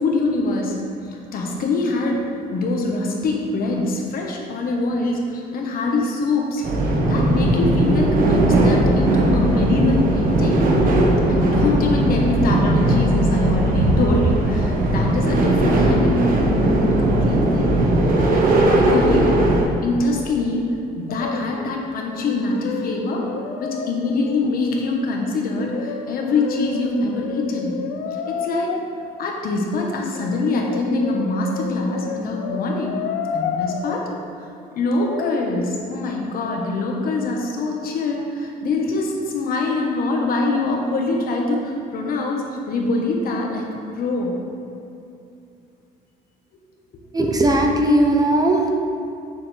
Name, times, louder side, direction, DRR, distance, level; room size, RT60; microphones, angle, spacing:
voice 1, 0.0-10.8 11.3-17.8 18.3-23.3 23.6-27.8 28.2-28.8 29.2-33.1 33.3-34.1 34.4-44.4, left 2 dB, 60° left, 0 dB, 1.4 m, -24 dB
sound 1, 6.6-19.6, right 1 dB, 55° right, 1.3 m, -18 dB
Brass instrument, 21.1-21.8 22.1-24.6 25.6-28.8 30.1-34.0 35.0-35.4, left 6 dB, 85° left, 0.7 m, -31 dB
voice 2, 47.1-48.7, right 1 dB, 20° right, 2 dB, 0.9 m, -17 dB
8.7 x 6.9 x 3.4 m, 2.7 s
cardioid pair, 110°, 17 cm